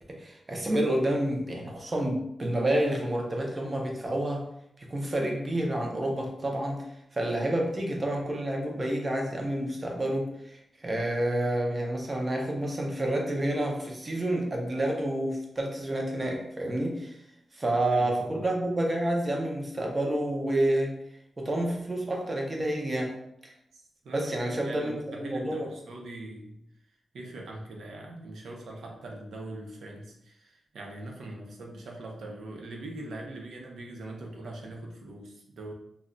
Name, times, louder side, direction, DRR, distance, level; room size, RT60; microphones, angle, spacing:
voice 1, 0.1-4.5 4.8-17.2 17.5-21.0 21.4-23.2 23.4-23.5 24.1-25.7, right 1 dB, 20° right, 0 dB, 0.5 m, -29 dB
voice 2, 17.9-18.5 23.7-26.6 27.1-35.7, right 2 dB, 85° right, 0 dB, 0.6 m, -42 dB
2.2 x 2.0 x 3.7 m, 0.77 s
wide cardioid pair, 175°, 0 cm